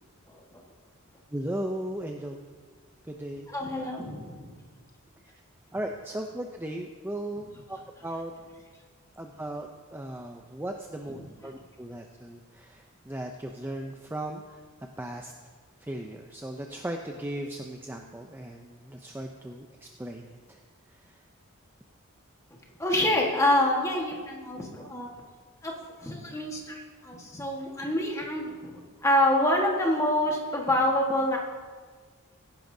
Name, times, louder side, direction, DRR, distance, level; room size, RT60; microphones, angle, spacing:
voice 1, 0.3-0.6 3.5-4.5 11.1-11.2 22.8-25.1 25.6-25.7 26.0-28.7 29.0-31.4, left 1 dB, 15° left, -1 dB, 1.4 m, -26 dB
voice 2, 1.3-2.4 3.0-3.5 5.7-8.3 9.2-14.6 15.0-15.3 15.8-20.6 20.9-21.2, right 1 dB, 10° right, 3 dB, 0.4 m, -37 dB
16.0 x 10.5 x 2.7 m, 1.5 s
head